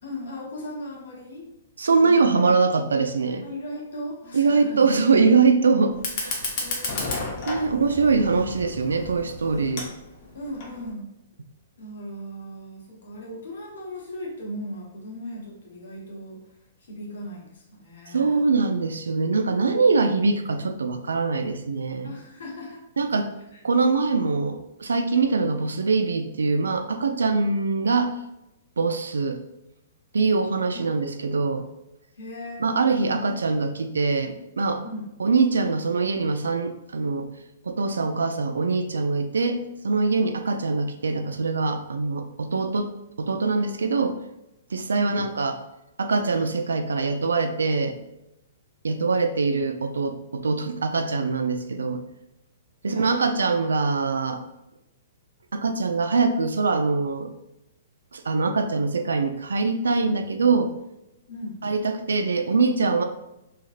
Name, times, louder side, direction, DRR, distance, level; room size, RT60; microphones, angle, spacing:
voice 1, 0.0-1.5 2.0-2.5 3.4-4.8 6.6-7.5 10.3-11.1 11.8-16.5 16.8-18.5 22.0-22.8 23.5-23.6 30.7-30.9 32.2-32.6 34.8-35.1 44.9-45.2 52.8-53.3 61.3-61.6, equal, 70° left, -2 dB, 1.0 m, -37 dB
voice 2, 1.8-3.4 4.3-5.9 6.2-6.4 7.5-9.9 18.1-22.1 23.0-23.3 23.6-28.1 28.8-29.4 30.1-31.7 32.6-34.8 35.2-37.3 37.7-42.9 43.2-44.2 44.7-45.6 46.0-48.0 48.8-52.0 52.8-54.4 55.5-57.3 58.1-60.7 61.6-63.0, right 4 dB, 80° right, 7 dB, 0.3 m, -23 dB
Fire, 5.9-10.9, left 3 dB, 45° left, 0.8 m, -33 dB
3.1 x 2.7 x 2.4 m, 0.90 s
hypercardioid pair, 120°, 0 cm